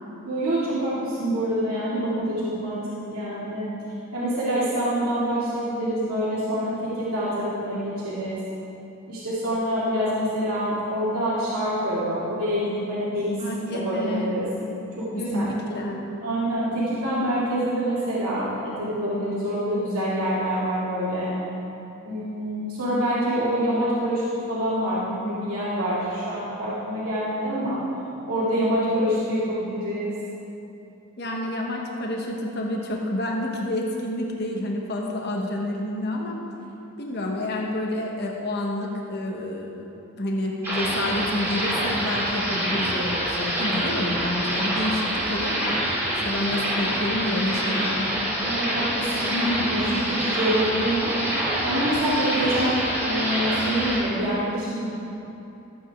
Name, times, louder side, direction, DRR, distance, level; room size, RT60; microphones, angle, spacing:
voice 1, 0.3-3.7 4.1-8.4 9.1-13.4 13.7-14.5 15.0-15.5 16.2-21.3 22.0-27.8 28.3-30.1 48.4-51.1 51.6-54.9, equal, 85° right, -10 dB, 2.4 m, -26 dB
voice 2, 13.4-14.3 15.1-16.0 31.2-36.4 37.0-45.8 46.2-48.3, left 1 dB, 50° left, 0 dB, 1.2 m, -29 dB
sound 1, 40.6-54.0, right 1 dB, 10° right, 2.7 m, -26 dB
14.0 x 8.8 x 3.6 m, 2.9 s
head